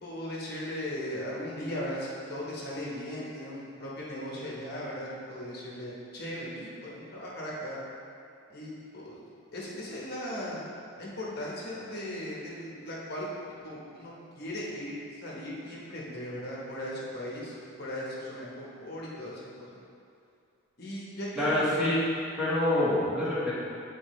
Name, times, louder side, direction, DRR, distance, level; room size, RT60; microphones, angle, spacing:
voice 1, 0.0-7.8 8.5-9.2 9.5-10.6 11.0-13.3 13.6-15.0 15.2-19.8 20.8-21.8, left 1 dB, 50° left, -6 dB, 1.1 m, -38 dB
voice 2, 21.4-22.0 22.4-23.5, left 1 dB, 5° right, -10 dB, 1.3 m, -26 dB
8.7 x 4.3 x 3.1 m, 2.5 s
head